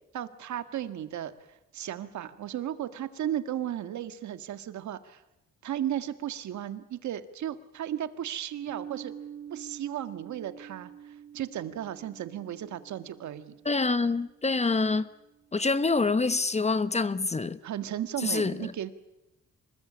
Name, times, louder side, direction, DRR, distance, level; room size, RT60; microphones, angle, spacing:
voice 1, 0.1-5.2 5.6-9.1 9.5-13.5 17.6-18.9, right 11 dB, 70° right, 1.8 m, -35 dB
sound 1, 8.7-15.4, right 8 dB, 40° right, 4.7 m, -47 dB
voice 2, 13.6-15.1 15.5-17.6 18.2-18.7, left 3 dB, 20° left, 1.1 m, -26 dB
26.0 x 21.0 x 8.8 m
cardioid pair, 90°, 30 cm